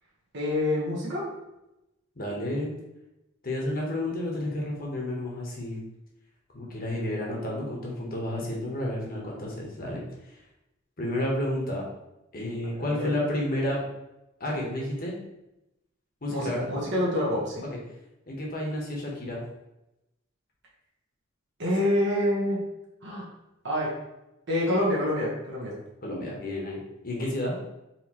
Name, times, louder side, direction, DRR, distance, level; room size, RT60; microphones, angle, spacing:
voice 1, 0.3-1.3 12.8-13.1 16.3-17.6 21.6-22.6 23.0-23.3 23.6-23.9 24.5-25.7, left 1 dB, 60° right, -5 dB, 1.3 m, -27 dB
voice 2, 2.2-2.7 3.4-5.8 6.5-10.0 11.0-11.8 12.3-13.8 14.4-15.1 16.2-16.7 17.6-17.8 18.3-19.4 26.0-26.8 27.0-27.5, left 1 dB, 45° left, -2 dB, 1.1 m, -31 dB
4.4 x 3.2 x 3.0 m, 0.92 s
head